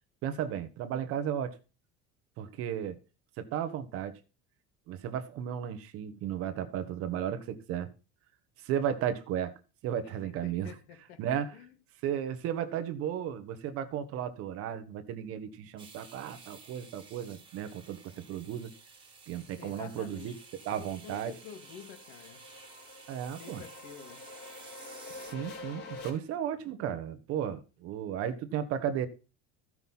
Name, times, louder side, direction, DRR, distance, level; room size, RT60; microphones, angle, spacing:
voice 1, 0.2-1.6 2.4-3.0 3.4-4.2 4.9-7.9 8.6-9.5 9.8-10.7 11.2-11.5 12.0-18.7 19.3-20.3 20.6-21.3 23.1-23.6 25.3-29.1, right 9 dB, 45° right, 1.2 m, -34 dB
voice 2, 10.4-11.7 19.6-20.4 20.8-22.4 23.4-24.2, left 8 dB, 65° left, 3.4 m, -49 dB
sound 1, 15.8-25.3, right 4 dB, 15° right, 1.9 m, -53 dB
sound 2, 19.5-26.1, left 3 dB, 30° left, 2.6 m, -48 dB
14.5 x 6.1 x 5.6 m
cardioid pair, 175°, 32 cm